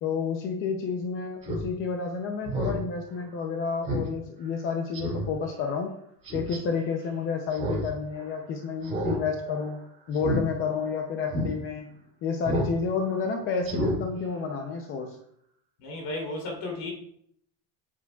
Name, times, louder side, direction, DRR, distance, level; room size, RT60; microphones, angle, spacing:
voice 1, 0.0-6.0 6.3-9.8 10.1-11.9 12.2-15.2, left 5 dB, 30° left, 0.6 m, -30 dB
Speech synthesizer, 1.4-1.6 2.0-2.1 2.4-2.8 3.2-3.3 3.9-4.1 4.4-4.5 4.9-5.3 6.2-6.6 7.5-7.9 8.2-8.3 8.8-9.2 9.5-9.7 10.1-10.4 10.8-10.9 11.3-11.5 12.4-12.7 13.1-13.2 13.6-14.0 14.3-14.4, right 1 dB, 15° right, 2.9 m, -29 dB
voice 2, 15.8-16.9, left 2 dB, 50° left, 3.1 m, -34 dB
9.0 x 8.4 x 2.3 m
cardioid pair, 175°, 44 cm